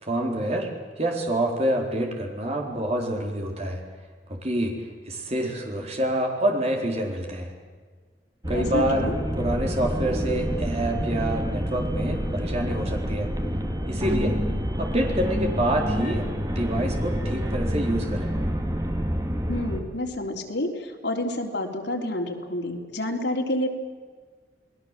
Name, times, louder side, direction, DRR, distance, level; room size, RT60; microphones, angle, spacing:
voice 1, 0.0-0.7 1.0-3.8 4.3-4.7 5.0-7.5 8.5-9.1 9.4-13.3 13.9-14.4 14.8-16.3 16.6-18.3, right 1 dB, 35° right, 1 dB, 4.1 m, -27 dB
sound 1, 8.4-19.8, equal, 20° right, 2.2 m, -28 dB
voice 2, 8.5-9.1 19.5-23.7, left 1 dB, 80° left, 1 dB, 3.7 m, -29 dB
29.0 x 20.0 x 7.6 m, 1.5 s
head